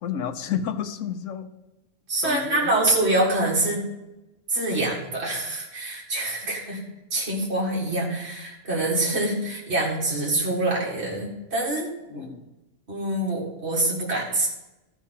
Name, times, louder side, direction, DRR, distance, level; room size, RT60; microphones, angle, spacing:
voice 1, 0.0-1.5 2.2-2.7 12.1-12.5, left 8 dB, 85° left, 9 dB, 1.1 m, -31 dB
voice 2, 2.1-3.8 4.5-6.8 7.1-12.3 12.9-14.5, right 2 dB, 60° right, -4 dB, 2.2 m, -25 dB
13.5 x 4.6 x 5.6 m, 0.99 s
omnidirectional pair, 1.3 m